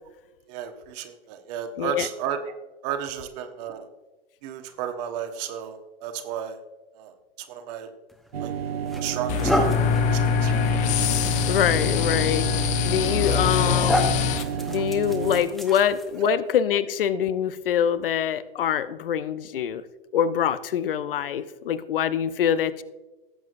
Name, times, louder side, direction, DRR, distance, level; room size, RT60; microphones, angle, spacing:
voice 1, 0.5-2.5 2.8-3.9 4.4-6.6 6.9-7.9 8.4-8.5 9.0-10.5 13.3-13.5 16.2-16.4, right 9 dB, 40° right, 7 dB, 1.2 m, -33 dB
voice 2, 1.8-2.1 11.4-14.1 14.7-19.8 20.1-22.8, left 9 dB, 65° left, 14 dB, 0.7 m, -24 dB
sound 1, 8.1-8.3 8.9-16.3, equal, ahead, 0.9 m, -31 dB
sound 2, 8.3-15.4, right 8 dB, 75° right, 0.7 m, -30 dB
sound 3, 9.3-14.4, left 10 dB, 25° left, 0.5 m, -24 dB
17.5 x 7.5 x 2.6 m, 1.1 s
figure-of-eight pair, 105°, 30 cm